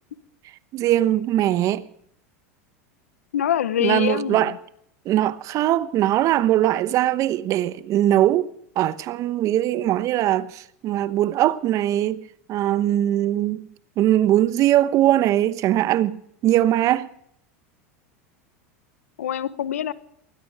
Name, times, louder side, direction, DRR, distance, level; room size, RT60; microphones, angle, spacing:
voice 1, 0.7-1.8 3.8-4.5 5.1-12.2 12.5-13.7 14.0-17.1, right 13 dB, 45° right, 1.0 m, -21 dB
voice 2, 3.3-4.6 19.2-19.9, left 10 dB, 85° left, 1.0 m, -24 dB
20.0 x 20.0 x 3.5 m
hypercardioid pair, 105°, 8 cm